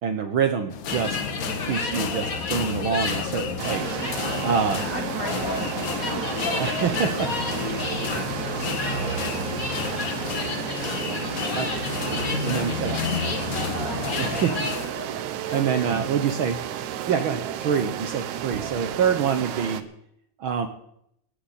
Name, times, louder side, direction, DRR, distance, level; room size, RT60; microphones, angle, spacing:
voice 1, 0.0-1.2 1.6-4.0 4.4-4.8 6.6-7.3 11.5-11.7 12.4-13.0 14.2-14.5 15.5-16.6 17.1-19.8 20.4-20.7, right 7 dB, 60° right, 8 dB, 1.4 m, -25 dB
sound 1, 0.7-14.9, left 7 dB, 55° left, 1.5 m, -34 dB
sound 2, 0.9-14.7, left 3 dB, 35° left, 1.7 m, -31 dB
sound 3, 3.6-19.8, right 10 dB, 85° right, 2.2 m, -32 dB
voice 2, 4.1-11.6 12.2-16.0, left 2 dB, 20° left, 1 dB, 3.1 m, -42 dB
18.5 x 15.5 x 4.3 m, 0.73 s
omnidirectional pair, 3.4 m